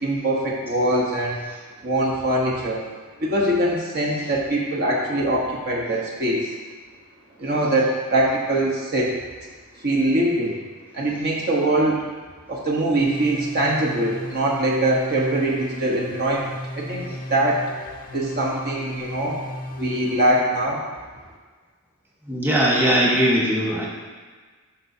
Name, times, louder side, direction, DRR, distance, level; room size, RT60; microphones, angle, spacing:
voice 1, 0.0-1.4 1.8-2.9 3.2-6.5 7.4-9.1 9.8-10.5 10.9-12.0 12.5-17.6 18.1-19.4 19.8-20.8, right 1 dB, 45° right, -3 dB, 1.1 m, -22 dB
sound 1, 13.0-20.3, left 1 dB, 40° left, 0.5 m, -35 dB
voice 2, 22.3-23.9, equal, 10° right, -5 dB, 1.3 m, -19 dB
11.0 x 5.7 x 2.8 m, 1.5 s
head